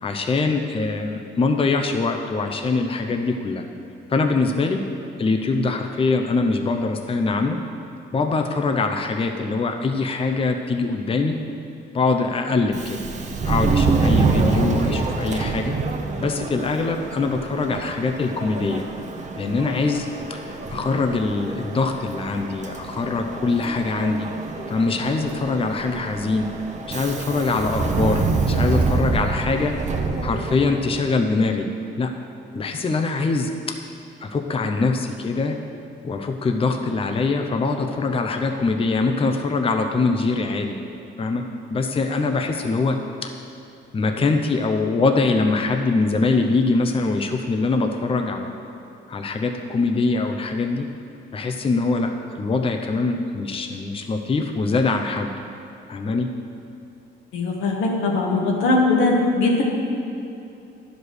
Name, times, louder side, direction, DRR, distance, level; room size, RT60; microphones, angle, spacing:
voice 1, 0.0-3.6 4.1-4.9 5.2-7.6 8.1-11.4 11.9-13.0 13.4-15.8 16.2-18.8 19.4-24.3 24.7-26.5 26.9-29.8 30.2-31.7 32.0-32.1 32.5-33.8 34.2-35.6 36.0-40.8 41.2-43.3 43.9-48.6 49.1-50.9 51.3-55.3 55.9-56.3, left 3 dB, 30° left, 4 dB, 0.7 m, -23 dB
Subway metro underground, 12.6-31.0, right 4 dB, 35° right, 0.9 m, -26 dB
voice 2, 57.3-59.6, left 2 dB, 90° left, -1 dB, 1.6 m, -20 dB
10.5 x 5.1 x 6.4 m, 2.7 s
cardioid pair, 90°, 20 cm